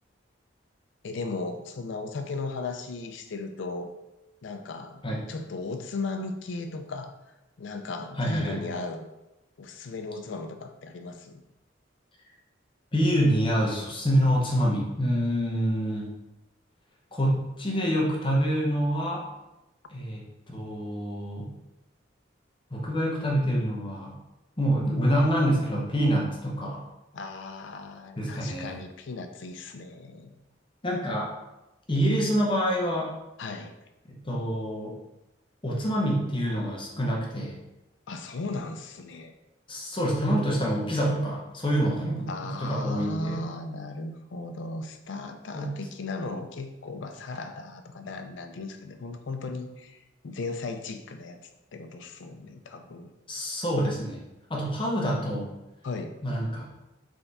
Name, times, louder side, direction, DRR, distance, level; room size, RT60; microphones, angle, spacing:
voice 1, 1.0-3.9 4.4-5.0 5.3-7.1 7.6-9.1 9.6-11.4 27.1-30.4 33.4-33.7 38.1-39.3 42.3-51.4 51.7-53.1 55.8-56.2, left 3 dB, 75° left, 7 dB, 0.5 m, -36 dB
voice 2, 8.2-8.7 12.9-16.1 17.1-19.3 19.9-21.5 22.7-24.2 24.6-26.8 28.2-28.8 30.8-31.3 31.9-33.1 34.1-35.0 35.6-37.6 39.7-43.4 45.5-45.7 53.3-54.2 54.5-55.5 56.2-56.6, equal, 25° left, -3 dB, 0.8 m, -26 dB
3.5 x 3.4 x 4.0 m, 0.96 s
head